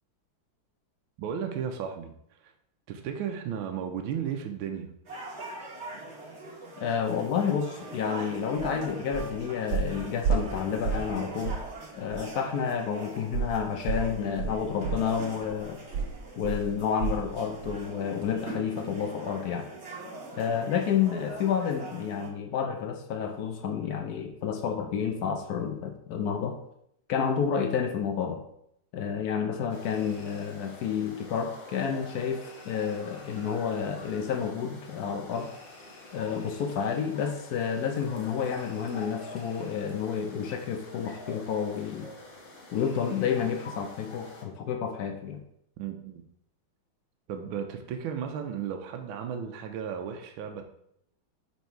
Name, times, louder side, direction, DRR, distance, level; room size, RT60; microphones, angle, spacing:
voice 1, 1.2-2.1 2.4-2.5 2.9-4.9 45.8-46.2 47.3-50.6, right 8 dB, 80° right, 4 dB, 1.5 m, -34 dB
sound 1, 5.0-22.3, right 2 dB, 35° right, 1.4 m, -42 dB
voice 2, 6.8-11.6 11.9-15.8 16.4-19.7 20.4-26.6 27.1-28.4 28.9-35.5 36.1-42.1 42.7-45.4, left 7 dB, 70° left, 5 dB, 0.9 m, -30 dB
sound 2, 8.6-8.7 9.1-9.4 9.7-11.2 11.4-11.7 12.1-12.2 13.3-17.3 17.6-17.9 18.2-18.3, right 5 dB, 60° right, 1.2 m, -31 dB
sound 3, 29.7-44.4, left 2 dB, 40° left, 0.8 m, -47 dB
5.4 x 4.5 x 4.5 m, 0.72 s
omnidirectional pair, 2.3 m